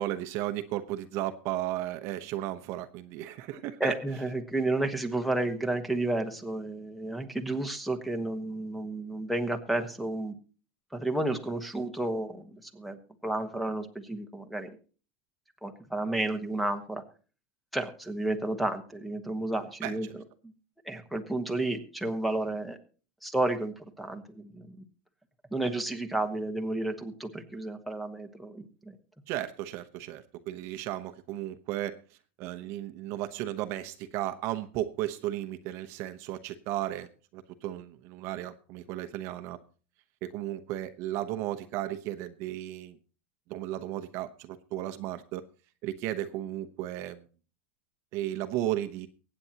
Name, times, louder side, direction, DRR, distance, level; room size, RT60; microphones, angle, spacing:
voice 1, 0.0-3.9 19.8-20.1 29.3-32.0 32.4-39.6 40.2-43.0 43.5-45.4 45.8-47.2 48.1-49.1, right 13 dB, 45° right, 9 dB, 0.9 m, -34 dB
voice 2, 3.8-10.4 10.9-14.7 15.6-17.0 17.7-20.2 20.8-22.8 23.2-24.8 25.5-29.0, right 2 dB, ahead, 9 dB, 1.2 m, -31 dB
23.5 x 8.9 x 2.9 m, 0.37 s
supercardioid pair, 155°, 6 cm